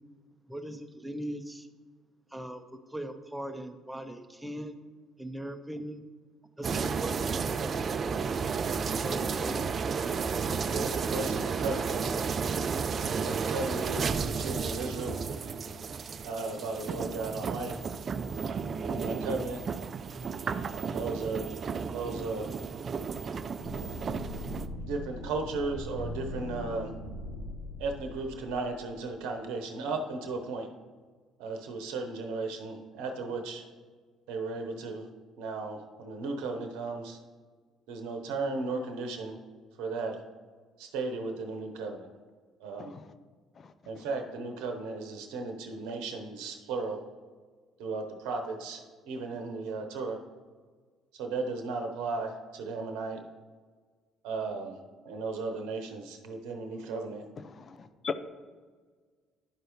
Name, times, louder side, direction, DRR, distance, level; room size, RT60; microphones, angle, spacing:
voice 1, 0.5-1.7 2.3-4.7 5.2-6.0 6.6-8.2 8.9-9.7, equal, 5° right, 7 dB, 0.8 m, -40 dB
sound 1, 6.6-24.7, right 5 dB, 45° right, 0.4 m, -32 dB
voice 2, 10.6-12.2 13.1-15.2 16.2-17.8 18.8-19.6 20.9-21.6 21.9-22.5 24.8-26.9 27.8-30.7 31.4-33.6 34.3-35.1 35.4-37.2 37.9-39.4 39.8-40.2 40.8-42.1 42.6-42.9 43.9-47.0 47.8-50.2 51.2-53.2 54.2-54.8 55.0-57.2, right 3 dB, 75° right, 5 dB, 0.8 m, -35 dB
sound 2, 23.6-29.0, left 1 dB, 75° left, 1.8 m, -40 dB
voice 3, 57.4-58.2, left 6 dB, 45° left, 11 dB, 0.6 m, -38 dB
11.0 x 4.7 x 3.1 m, 1.5 s
hypercardioid pair, 60°, 0 cm